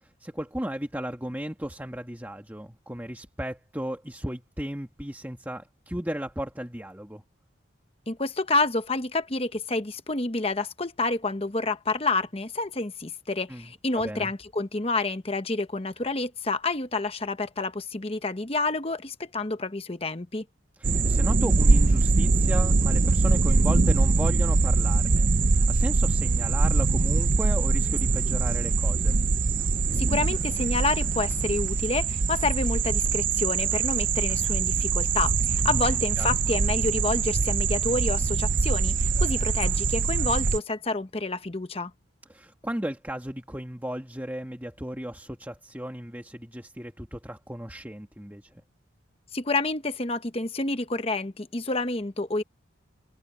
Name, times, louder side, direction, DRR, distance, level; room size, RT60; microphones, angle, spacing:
voice 1, 0.0-7.2 13.5-14.3 20.8-29.2 35.9-36.3 42.3-48.6, equal, 10° right, 1.7 m, -35 dB
voice 2, 8.1-20.4 29.9-41.9 49.3-52.4, left 3 dB, 30° left, 1.0 m, -29 dB
sound 1, 20.8-40.6, right 4 dB, 45° right, 0.6 m, -23 dB
head